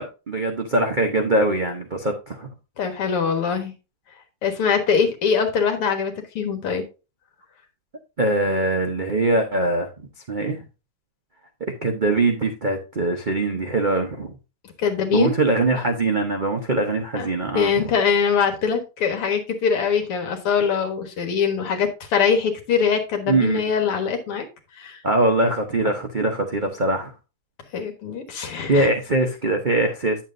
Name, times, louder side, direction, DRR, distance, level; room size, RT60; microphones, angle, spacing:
voice 1, 0.0-2.5 8.2-10.6 11.8-14.3 15.1-17.9 23.3-23.6 25.0-27.1 28.7-30.2, right 2 dB, 70° right, 0.4 m, -22 dB
voice 2, 2.8-3.7 4.4-6.8 14.8-15.3 17.2-24.5 24.8-25.0 27.7-28.9, left 6 dB, 85° left, 2.4 m, -23 dB
9.2 x 7.2 x 2.6 m
omnidirectional pair, 2.4 m